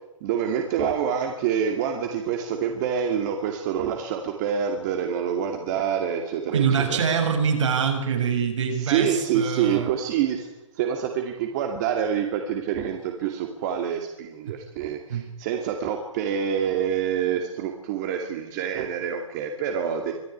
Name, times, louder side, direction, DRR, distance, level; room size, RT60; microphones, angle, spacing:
voice 1, 0.2-7.0 8.7-10.5 10.8-20.1, right 8 dB, 35° right, 4 dB, 2.5 m, -26 dB
voice 2, 6.5-9.9 14.5-14.6 15.1-15.3, right 6 dB, 65° right, 3 dB, 7.2 m, -24 dB
24.5 x 15.0 x 10.0 m, 0.99 s
hypercardioid pair, 150°, 17 cm